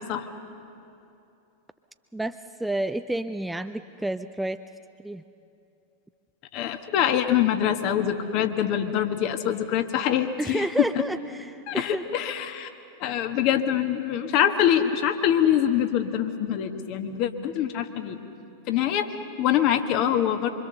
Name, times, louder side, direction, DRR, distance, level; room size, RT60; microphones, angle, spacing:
voice 1, 2.1-4.6 5.0-5.2 10.4-12.0, right 1 dB, 5° right, 9 dB, 0.5 m, -30 dB
voice 2, 6.5-10.7 11.7-12.7 13.0-18.2 18.7-20.5, left 10 dB, 40° left, 6 dB, 1.5 m, -24 dB
25.0 x 25.0 x 6.8 m, 2.8 s
figure-of-eight pair, 90°, 0 cm